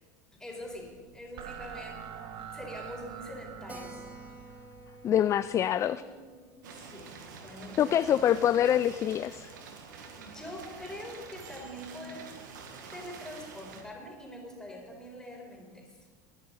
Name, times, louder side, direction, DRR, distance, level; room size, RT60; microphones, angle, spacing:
voice 1, 0.4-4.1 5.9-6.3 6.5-8.2 9.9-12.3 12.9-16.1, equal, 5° left, -2 dB, 4.4 m, -44 dB
sound 1, 0.6-5.7, right 8 dB, 50° right, 1.0 m, -46 dB
Keyboard (musical), 3.7-8.7 9.0-9.1 9.4-9.5 9.8-9.9 10.4-10.8, right 1 dB, 15° right, 1.9 m, -52 dB
voice 2, 5.0-6.0 7.8-9.5, left 10 dB, 30° left, 14 dB, 0.3 m, -25 dB
sound 2, 6.6-13.8, right 5 dB, 90° right, 1.8 m, -47 dB
19.5 x 10.5 x 4.1 m, 1.5 s
supercardioid pair, 115°, 10 cm